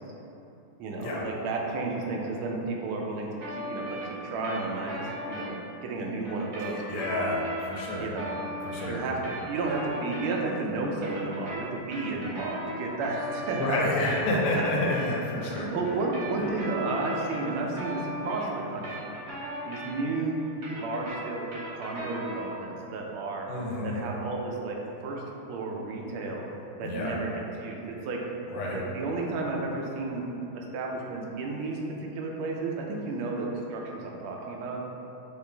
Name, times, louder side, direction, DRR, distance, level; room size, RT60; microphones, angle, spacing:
voice 1, 0.8-7.3 8.0-8.4 8.9-13.8 14.3-14.6 15.4-19.2 19.7-20.4 20.7-21.4 21.7-23.5 23.8-24.8 25.0-25.2 25.5-26.5 26.8-28.2 28.7-30.3 30.5-34.8, right 3 dB, 75° right, -1 dB, 1.4 m, -32 dB
sound 1, 3.4-5.5 6.2-10.6 10.9-15.1 15.8-20.2 20.5-22.6, equal, 60° right, 0.8 m, -38 dB
voice 2, 6.7-7.4 7.7-8.1 8.6-9.0 13.5-15.7 23.5-24.1 26.8-27.1 28.5-28.8, left 2 dB, 85° left, -3 dB, 1.6 m, -29 dB
4.7 x 2.5 x 3.3 m, 3.0 s
omnidirectional pair, 2.4 m